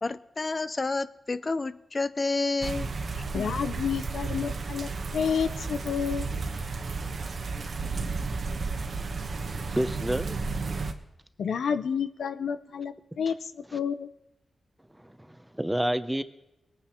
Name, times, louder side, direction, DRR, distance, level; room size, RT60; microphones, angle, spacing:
voice 1, 0.0-3.5, left 3 dB, 40° left, 14 dB, 0.6 m, -30 dB
sound 1, 2.6-10.9, right 4 dB, 60° right, 1.2 m, -33 dB
voice 2, 3.3-6.3 11.4-14.1, left 7 dB, 80° left, 11 dB, 0.7 m, -30 dB
voice 3, 9.8-10.4 13.7-13.8 15.0-16.2, right 1 dB, 10° right, 12 dB, 0.8 m, -29 dB
22.0 x 9.2 x 4.4 m, 0.89 s
cardioid pair, 65°, 0 cm